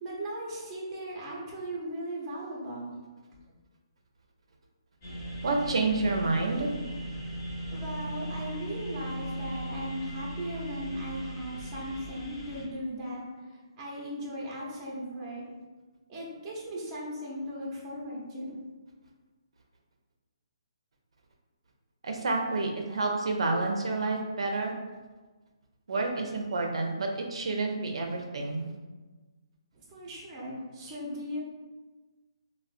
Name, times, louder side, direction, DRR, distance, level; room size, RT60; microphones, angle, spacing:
voice 1, 0.0-3.0 7.7-15.5 16.1-18.6 29.9-31.4, equal, 20° right, -5 dB, 0.6 m, -38 dB
sound 1, 5.0-12.6, right 1 dB, 25° left, 0.8 m, -38 dB
voice 2, 5.4-6.7 22.0-24.7 25.9-28.7, right 3 dB, 80° right, 2 dB, 0.4 m, -29 dB
3.6 x 2.0 x 2.4 m, 1.3 s
hypercardioid pair, 165°, 3 cm